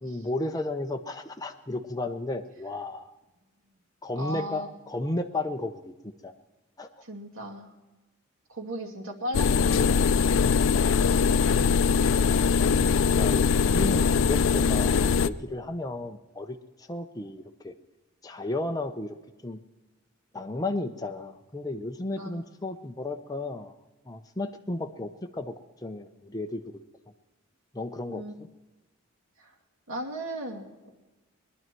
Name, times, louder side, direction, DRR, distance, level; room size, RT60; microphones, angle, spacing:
voice 1, 0.0-3.1 4.0-6.3 6.8-6.9 13.1-17.7 18.2-19.1 19.4-19.6 20.3-23.7 24.1-25.5 25.8-26.6 27.7-28.2, left 2 dB, 20° left, 4 dB, 0.7 m, -33 dB
voice 2, 4.2-4.7 7.0-7.7 8.5-10.0 10.9-12.0 22.2-22.4 28.1-28.3 29.4-29.5 29.9-30.9, right 1 dB, 90° right, -1 dB, 2.5 m, -37 dB
sound 1, 9.3-15.3, left 5 dB, 70° left, 0.4 m, -22 dB
21.5 x 11.0 x 4.6 m, 1.1 s
head